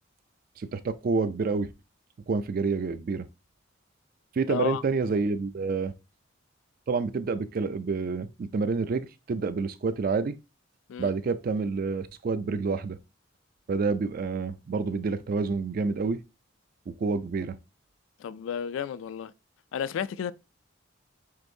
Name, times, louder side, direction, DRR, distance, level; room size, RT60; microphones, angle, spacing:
voice 1, 0.6-1.7 2.3-3.3 4.4-5.9 6.9-10.4 11.0-13.0 13.7-16.2 16.9-17.6, right 4 dB, 45° right, 0.3 m, -28 dB
voice 2, 4.5-4.8 10.9-11.1 18.2-19.3 19.7-20.3, left 7 dB, 70° left, 0.3 m, -32 dB
7.6 x 2.6 x 2.6 m
head